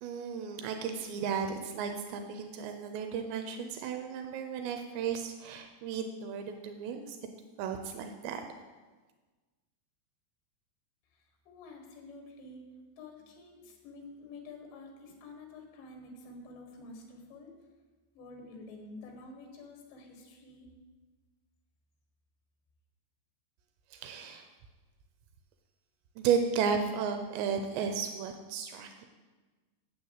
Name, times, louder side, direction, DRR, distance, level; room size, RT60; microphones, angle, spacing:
voice 1, 0.0-7.2 7.6-8.4 23.9-24.5 26.2-29.1, right 6 dB, 85° right, 6 dB, 3.0 m, -34 dB
voice 2, 11.1-12.7 13.0-17.5 18.1-20.7, left 3 dB, 90° left, 2 dB, 4.0 m, -49 dB
9.5 x 7.9 x 8.2 m, 1.3 s
omnidirectional pair, 5.0 m